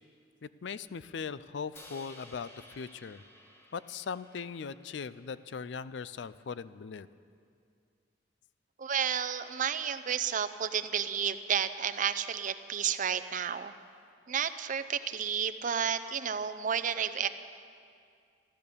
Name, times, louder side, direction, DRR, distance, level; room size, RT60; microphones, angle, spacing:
voice 1, 0.4-3.2 3.7-7.1, left 5 dB, 65° left, 15 dB, 0.4 m, -39 dB
Crash cymbal, 1.8-5.9, left 1 dB, 15° left, 1.1 m, -55 dB
voice 2, 8.8-13.7 14.3-17.3, right 8 dB, 45° right, 11 dB, 0.5 m, -31 dB
14.5 x 12.5 x 6.8 m, 2.3 s
head